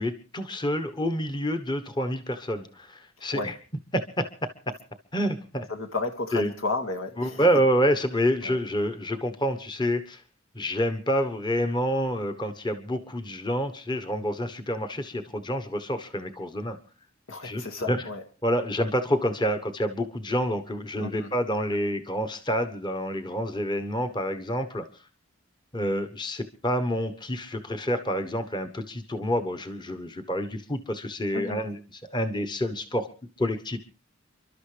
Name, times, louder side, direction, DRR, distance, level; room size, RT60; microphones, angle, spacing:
voice 1, 0.0-3.5 3.9-4.5 5.1-5.7 6.3-6.5 7.2-10.2 10.5-16.8 17.4-18.0 18.4-24.8 25.7-31.8 32.1-33.1 33.4-33.8, equal, 20° left, 8 dB, 1.1 m, -28 dB
voice 2, 5.7-7.4 8.4-8.6 17.3-18.2 21.0-21.3 31.3-31.6, left 3 dB, 80° left, 4 dB, 2.0 m, -32 dB
29.5 x 12.0 x 3.3 m, 0.35 s
head